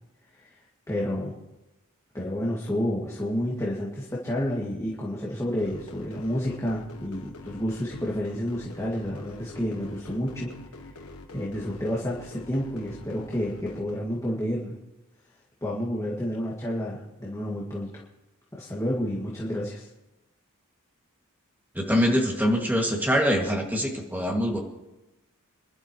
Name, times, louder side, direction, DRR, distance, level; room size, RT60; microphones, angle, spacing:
voice 1, 0.9-1.3 2.1-10.5 11.3-14.8 15.6-18.0 18.5-19.9, equal, 15° left, -5 dB, 2.1 m, -30 dB
sound 1, 5.6-13.9, left 2 dB, 70° left, 1.5 m, -44 dB
voice 2, 21.7-24.6, equal, 10° right, 0 dB, 2.1 m, -24 dB
27.0 x 12.0 x 3.1 m, 1.0 s
head